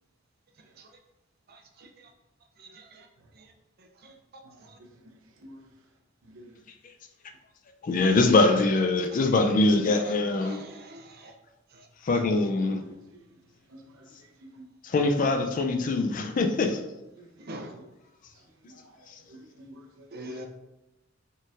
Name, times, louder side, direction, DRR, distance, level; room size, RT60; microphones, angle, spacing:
voice 1, 1.5-1.9 2.6-3.0 4.0-4.1 4.6-4.7 10.0-10.1 10.4-11.3 17.4-17.7 20.1-20.5, right 1 dB, 50° right, 3 dB, 0.5 m, -43 dB
voice 2, 7.8-10.6 12.0-12.8 14.8-16.8, left 3 dB, 40° left, 5 dB, 0.4 m, -23 dB
voice 3, 12.8-13.2 13.7-14.1 14.4-14.5 17.2-17.3 17.7-17.8 18.7-18.8 19.3-20.4, equal, 85° right, 2 dB, 0.7 m, -50 dB
4.1 x 4.0 x 2.4 m, 0.99 s
head